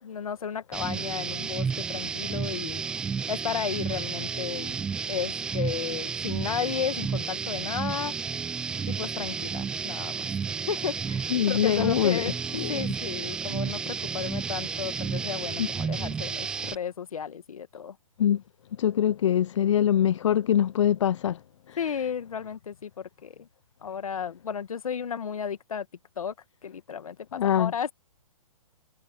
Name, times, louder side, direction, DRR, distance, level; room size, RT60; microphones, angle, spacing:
voice 1, 0.0-2.8 3.3-4.8 5.1-8.1 8.9-10.3 10.7-12.3 12.7-18.0 21.8-23.5 23.8-25.9 26.2-26.3 26.6-27.9, left 7 dB, 75° left, 1.8 m, -33 dB
sound 1, 0.7-16.8, right 6 dB, 5° right, 0.3 m, -32 dB
voice 2, 11.3-12.2 12.5-12.8 15.6-15.7 18.2-18.4 18.8-21.4 21.7-21.8 27.3-27.7, left 10 dB, 55° left, 0.6 m, -23 dB
hypercardioid pair, 145°, 18 cm